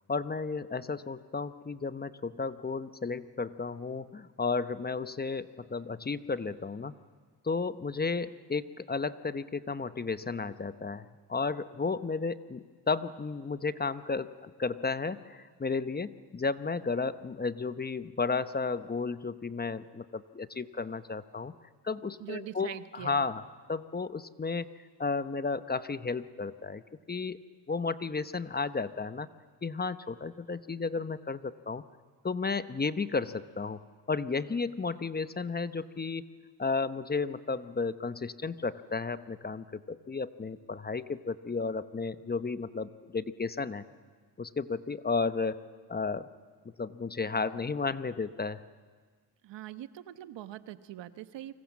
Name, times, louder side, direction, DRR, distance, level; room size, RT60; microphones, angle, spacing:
voice 1, 0.1-6.9 7.4-21.5 21.8-24.7 25.0-26.8 27.1-27.4 27.7-29.3 29.6-31.8 32.2-33.8 34.1-36.2 36.6-43.8 44.4-45.6 45.9-46.3 46.6-48.6, left 4 dB, 20° left, 13 dB, 0.9 m, -33 dB
voice 2, 22.2-23.3 49.4-51.5, right 13 dB, 80° right, 11 dB, 1.2 m, -43 dB
29.0 x 25.0 x 7.3 m, 1.5 s
cardioid pair, 85°, 43 cm